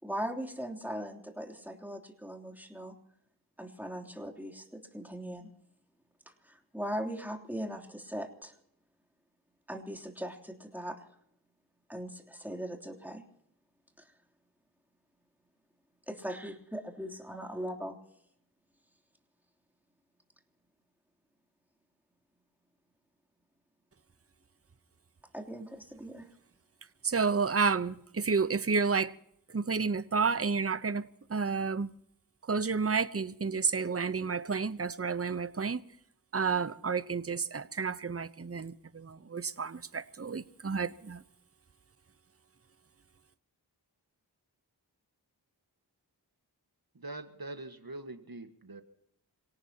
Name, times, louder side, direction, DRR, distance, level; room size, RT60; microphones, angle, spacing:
voice 1, 0.0-3.0 3.6-5.5 6.2-8.5 9.7-11.0 11.9-13.3 14.0-14.1 16.1-18.0 25.3-26.3, equal, 5° right, 3.2 m, -39 dB
voice 2, 27.0-29.1 29.5-31.9 32.5-35.8 36.3-41.2, right 5 dB, 35° right, 0.9 m, -31 dB
voice 3, 46.9-48.8, right 2 dB, 55° right, 1.7 m, -43 dB
27.0 x 18.0 x 2.9 m
wide cardioid pair, 40°, 41 cm